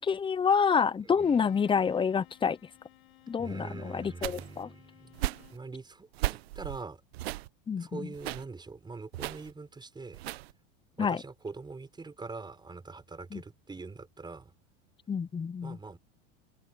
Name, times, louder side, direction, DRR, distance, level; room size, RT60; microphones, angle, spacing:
voice 1, 0.0-2.6 3.3-4.7 7.7-8.1 11.0-11.2 13.3-13.4 15.1-15.8, left 6 dB, 15° left, 0.9 m, -28 dB
voice 2, 1.0-1.4 3.4-5.2 5.5-7.0 7.8-10.2 11.0-14.5 15.6-16.0, right 3 dB, 15° right, 5.9 m, -43 dB
Bowed string instrument, 1.2-5.7, left 19 dB, 80° left, 6.0 m, -58 dB
sound 1, 4.2-4.6 5.1-5.6 6.1-6.8 7.1-7.5 8.1-8.5 9.1-9.5 10.1-10.5, right 17 dB, 80° right, 1.1 m, -35 dB
supercardioid pair, 115°, 30 cm